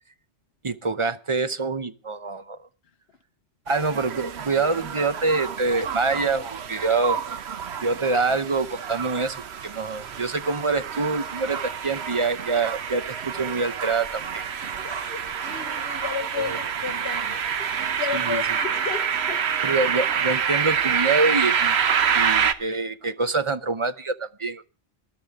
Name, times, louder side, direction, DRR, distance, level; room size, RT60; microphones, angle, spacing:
voice 1, 0.6-2.6 3.7-7.2 7.8-14.4 16.4-16.6 18.1-18.4 19.6-21.8 22.1-24.6, right 3 dB, 30° right, 0.7 m, -25 dB
sound 1, 3.7-22.5, right 7 dB, 70° right, 1.1 m, -27 dB
voice 2, 14.8-19.6, left 7 dB, 65° left, 1.3 m, -34 dB
20.0 x 12.0 x 3.6 m
omnidirectional pair, 1.1 m